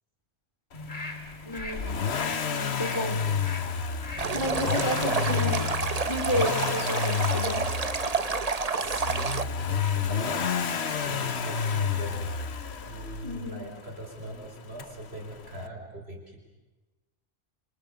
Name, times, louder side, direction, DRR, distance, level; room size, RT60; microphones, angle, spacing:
sound 1, 0.7-7.2 7.5-7.7, left 3 dB, 45° left, 3.0 m, -42 dB
voice 1, 1.4-1.9 2.5-3.2 4.3-5.7 6.1-7.7 13.2-13.6, equal, 25° left, 4 dB, 3.7 m, -31 dB
Accelerating revving vroom, 1.6-13.5 14.8-14.9, left 6 dB, 80° left, 1.4 m, -30 dB
Stream, 4.2-9.4, right 4 dB, 40° right, 1.1 m, -29 dB
voice 2, 4.2-5.1 8.8-10.5 11.0-12.3 12.9-16.4, right 1 dB, 75° right, 0 dB, 5.3 m, -40 dB
29.5 x 26.5 x 6.9 m, 1.1 s
omnidirectional pair, 1.1 m